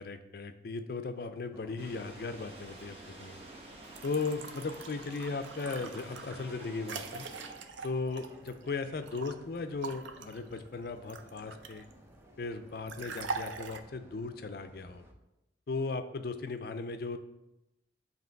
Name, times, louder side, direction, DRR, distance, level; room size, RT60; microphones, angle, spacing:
voice 1, 0.0-3.4 4.0-7.3 7.8-11.9 12.4-15.0 15.7-17.2, left 4 dB, 55° left, 9 dB, 0.4 m, -37 dB
sound 1, 1.5-15.1, equal, 15° right, 0.5 m, -57 dB
sound 2, 1.8-7.5, right 2 dB, 30° right, 1.0 m, -50 dB
sound 3, 3.8-9.3 9.8-11.9 12.9-13.8, right 4 dB, 90° right, 0.5 m, -43 dB
7.6 x 2.9 x 4.5 m, 0.92 s
head